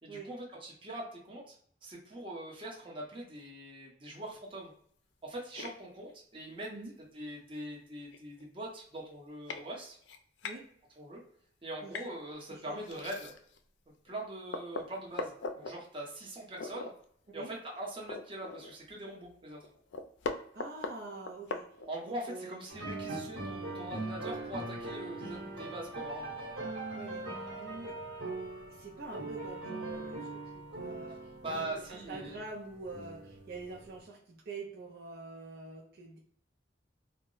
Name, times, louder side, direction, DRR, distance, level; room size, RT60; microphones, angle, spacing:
voice 1, 0.0-1.6 1.8-4.7 5.2-6.7 7.1-10.0 11.0-11.2 11.6-13.3 14.0-16.9 17.3-19.6 21.9-26.3 31.4-32.4, right 1 dB, 30° right, -3 dB, 0.9 m, -42 dB
sound 1, 5.5-5.7 7.2-7.3 7.8-7.9 8.1-8.5 9.0-9.1 9.5-9.6 10.0-10.6 11.9-12.1 12.8-13.6 14.1-14.2 14.5-15.7 16.6-16.9 17.3-17.4 17.7-18.9 19.2-19.3 19.6-22.2, left 4 dB, 85° left, 0.4 m, -40 dB
voice 2, 12.5-12.8 17.3-17.5 20.5-21.7 22.3-22.6 26.9-28.0 28.7-36.2, right 3 dB, 60° right, -2 dB, 0.5 m, -46 dB
sound 2, 22.7-34.0, right 2 dB, 75° right, 1.0 m, -41 dB
2.1 x 2.0 x 3.8 m, 0.63 s
head